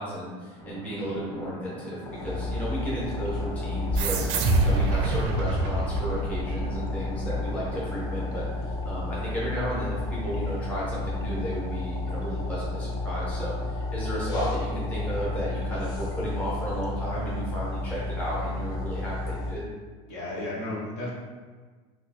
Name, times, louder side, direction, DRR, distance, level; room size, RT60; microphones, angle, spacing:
voice 1, 0.0-19.7, right 1 dB, 10° left, -8 dB, 0.8 m, -34 dB
sound 1, 0.6-8.6, left 1 dB, 90° left, 0.8 m, -42 dB
sound 2, 2.0-19.5, left 2 dB, 25° left, 0.3 m, -31 dB
sound 3, 4.0-7.0, right 3 dB, 55° right, 0.4 m, -26 dB
voice 2, 20.1-21.1, left 1 dB, 50° left, -5 dB, 0.8 m, -33 dB
3.0 x 2.2 x 4.1 m, 1.4 s
cardioid pair, 165°, 15 cm